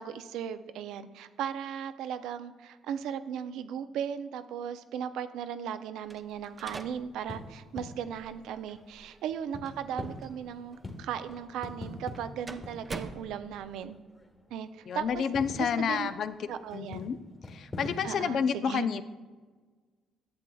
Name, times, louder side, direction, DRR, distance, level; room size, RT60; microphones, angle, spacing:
voice 1, 0.0-14.0 14.5-15.2 15.6-16.1 16.5-17.1 18.0-18.9, right 8 dB, 80° right, 11 dB, 0.4 m, -37 dB
sound 1, 6.0-13.9, right 3 dB, 25° right, 0.5 m, -47 dB
sound 2, 7.1-14.6 14.8-18.2, left 1 dB, 30° left, 1.5 m, -45 dB
voice 2, 14.9-16.5 16.7-17.2 17.5-19.0, left 7 dB, 65° left, 12 dB, 0.4 m, -30 dB
10.5 x 7.4 x 2.3 m, 1.4 s
supercardioid pair, 70°, 0 cm